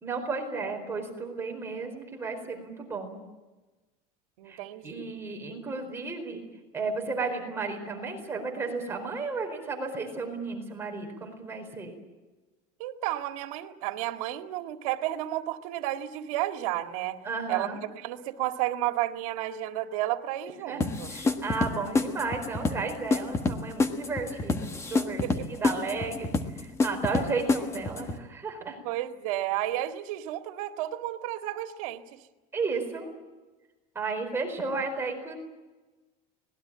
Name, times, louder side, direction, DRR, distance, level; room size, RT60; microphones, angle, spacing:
voice 1, 0.0-3.2 4.5-6.4 6.7-12.0 17.2-17.8 20.7-28.8 32.5-33.1 33.9-35.4, right 4 dB, 15° right, 2 dB, 4.5 m, -33 dB
voice 2, 4.4-5.1 12.8-17.2 17.5-17.7 17.9-21.1 25.2-25.5 28.8-32.2, right 14 dB, 85° right, 6 dB, 2.1 m, -32 dB
sound 1, 20.8-28.2, left 3 dB, 15° left, 1.4 m, -28 dB
25.5 x 20.0 x 8.8 m, 1.2 s
cardioid pair, 165°, 18 cm